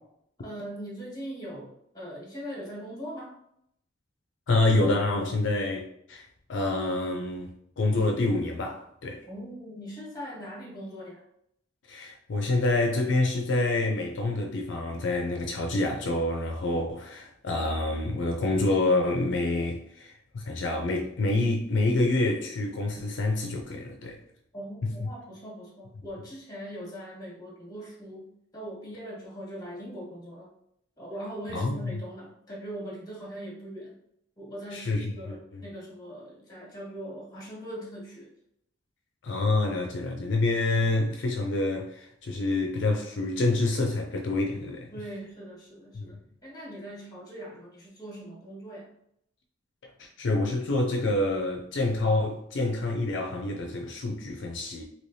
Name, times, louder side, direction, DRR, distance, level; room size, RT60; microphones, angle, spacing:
voice 1, 0.4-3.3 9.3-11.2 24.5-28.3 28.5-30.5 31.0-33.9 34.4-38.3 44.9-48.9, equal, 20° left, 1.3 m, -41 dB
voice 2, 4.5-9.2 11.9-24.2 24.8-25.1 31.5-31.9 34.7-35.6 39.2-44.9 46.0-46.1 50.0-54.8, left 2 dB, 70° left, 0.4 m, -27 dB
3.2 x 2.9 x 2.6 m
head